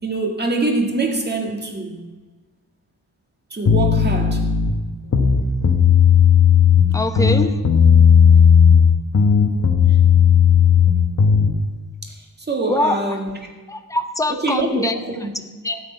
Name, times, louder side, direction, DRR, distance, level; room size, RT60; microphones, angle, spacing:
voice 1, 0.0-2.1 3.5-4.4 12.0-12.1 12.5-13.3 14.3-15.3 15.7-15.8, right 3 dB, 25° right, 2 dB, 1.9 m, -24 dB
sound 1, 3.7-4.7 5.1-6.8 7.2-8.9 9.1-11.5, left 7 dB, 45° left, 1.3 m, -13 dB
voice 2, 6.9-7.6 12.7-13.0 13.7-14.9 15.6-15.7, left 2 dB, 10° left, 7 dB, 0.8 m, -22 dB
13.0 x 6.4 x 9.2 m, 1.3 s
wide cardioid pair, 160°, 38 cm